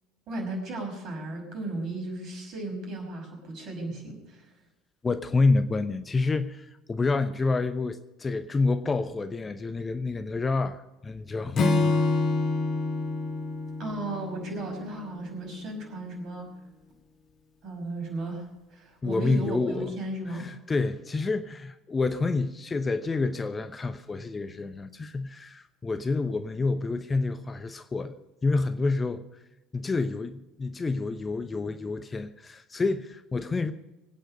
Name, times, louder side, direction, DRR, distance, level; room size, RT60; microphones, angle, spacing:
voice 1, 0.3-4.4 13.8-16.5 17.6-20.5, right 2 dB, 45° right, 5.5 m, -35 dB
voice 2, 5.0-12.0 19.0-19.9 20.3-29.2 29.7-33.7, left 3 dB, 20° left, 0.8 m, -28 dB
Acoustic guitar / Strum, 11.5-15.0, left 3 dB, 40° left, 1.8 m, -27 dB
23.0 x 9.1 x 5.3 m
figure-of-eight pair, 65°, 0 cm